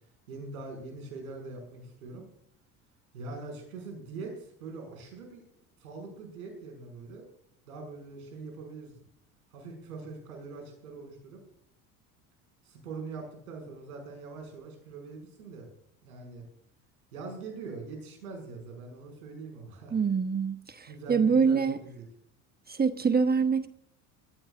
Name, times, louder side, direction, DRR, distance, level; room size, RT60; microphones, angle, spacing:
voice 1, 0.3-2.2 3.1-5.4 5.8-7.3 7.7-8.9 9.5-11.4 12.6-15.7 16.0-16.4 17.1-20.0 20.9-22.0, right 3 dB, 85° right, 6.2 m, -43 dB
voice 2, 19.9-21.8 22.7-23.7, right 5 dB, 20° right, 1.1 m, -25 dB
20.0 x 15.0 x 2.5 m
hypercardioid pair, 75°, 42 cm